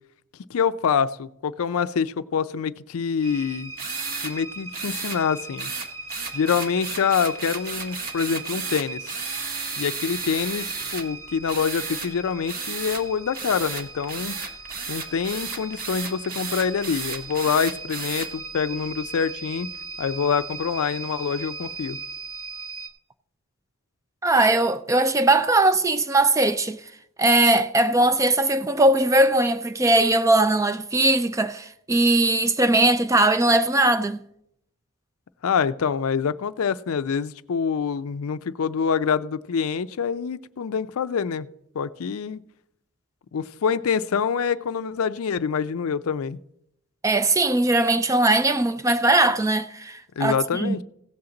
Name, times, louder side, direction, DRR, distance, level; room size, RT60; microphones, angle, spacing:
voice 1, 0.5-3.7 4.2-5.7 6.3-9.2 9.7-14.4 14.9-19.7 20.0-22.0 35.4-41.5 41.7-42.4 43.3-46.4 50.2-50.8, left 6 dB, 75° left, 0.4 m, -26 dB
sound 1, 3.2-22.9, right 3 dB, 70° right, 1.2 m, -39 dB
sound 2, 3.8-4.3 4.7-5.2 5.6-11.0 11.5-12.1 12.5-13.0 13.3-18.3, right 5 dB, 40° right, 1.0 m, -33 dB
voice 2, 24.2-26.8 27.2-34.2 47.0-50.8, right 2 dB, 15° right, 0.3 m, -20 dB
16.5 x 7.1 x 3.8 m
head